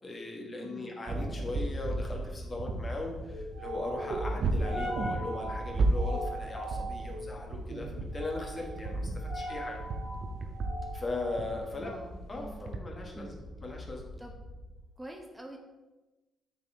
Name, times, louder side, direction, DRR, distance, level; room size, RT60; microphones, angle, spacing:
voice 1, 0.0-9.8 10.9-11.9 12.3-13.3 13.6-14.1, left 2 dB, 35° left, 0 dB, 1.5 m, -39 dB
voice 2, 0.6-0.9 11.7-12.5 13.1-13.4 14.2-14.3 15.0-15.6, right 1 dB, 15° right, 2 dB, 1.1 m, -46 dB
sound 1, 1.1-12.8, right 2 dB, 55° right, 0.7 m, -34 dB
sound 2, 1.6-14.8, equal, 70° left, 1.3 m, -41 dB
7.4 x 4.1 x 3.5 m, 1.1 s
hypercardioid pair, 40°, 0 cm